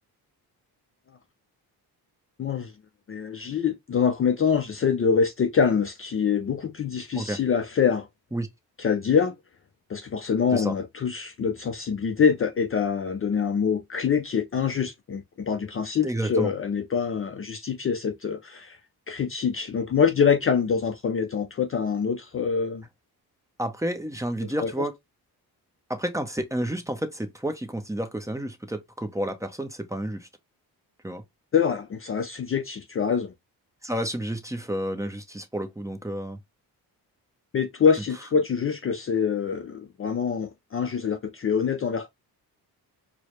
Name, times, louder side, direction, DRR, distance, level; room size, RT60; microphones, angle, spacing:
voice 1, 2.4-2.7 3.1-8.1 8.8-9.3 9.9-18.8 19.1-22.8 24.4-24.9 31.5-33.3 37.5-42.1, left 6 dB, 35° left, 0.4 m, -25 dB
voice 2, 16.0-16.5 23.6-24.9 25.9-30.3 31.0-31.2 33.8-36.4, right 1 dB, 10° right, 0.7 m, -30 dB
4.6 x 2.1 x 3.0 m
cardioid pair, 100°, 40 cm